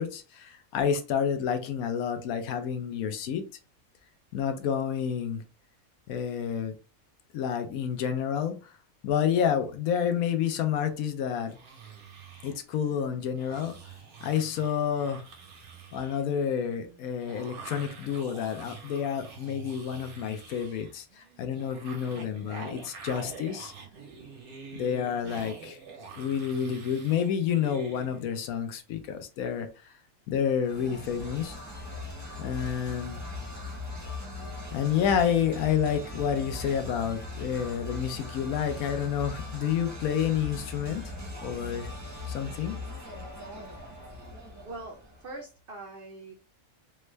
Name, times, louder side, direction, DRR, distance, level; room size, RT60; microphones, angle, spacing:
voice 1, 0.0-3.4 4.3-5.4 6.1-6.7 7.3-8.7 9.0-11.6 12.4-13.8 14.2-15.3 15.9-23.7 24.7-25.8 26.2-29.9 30.3-31.6 32.4-33.2 34.7-41.0 41.4-41.9 42.3-42.8, left 8 dB, 80° left, 8 dB, 1.0 m, -29 dB
sound 1, 11.5-28.4, right 5 dB, 85° right, 1.4 m, -46 dB
sound 2, 30.6-45.3, left 2 dB, 15° right, 0.6 m, -40 dB
voice 2, 44.6-46.3, right 2 dB, 60° right, 0 dB, 0.6 m, -42 dB
3.4 x 2.2 x 3.1 m, 0.33 s
omnidirectional pair, 1.5 m